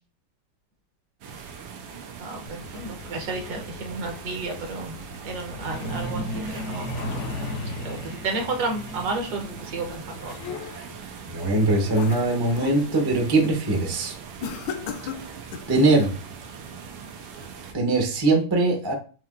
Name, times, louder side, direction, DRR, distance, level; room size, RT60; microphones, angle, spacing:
sound 1, 1.2-17.7, right 6 dB, 90° right, 1.5 m, -41 dB
voice 1, 2.2-5.0 5.2-7.1 7.4-10.3, right 3 dB, 65° right, 3 dB, 1.3 m, -32 dB
Truck, 2.5-14.8 16.0-16.2 16.5-16.7 17.1-17.4 17.7-17.8 18.3-18.4, left 1 dB, 60° left, 0.8 m, -37 dB
sound 2, 9.9-11.0 11.5-12.8 13.2-13.5 14.4-15.8, left 7 dB, 80° left, 1.3 m, -36 dB
voice 2, 11.3-14.1 15.7-16.1 17.7-18.9, right 2 dB, 35° right, 1 dB, 0.3 m, -21 dB
5.8 x 2.7 x 2.5 m, 0.37 s
omnidirectional pair, 2.1 m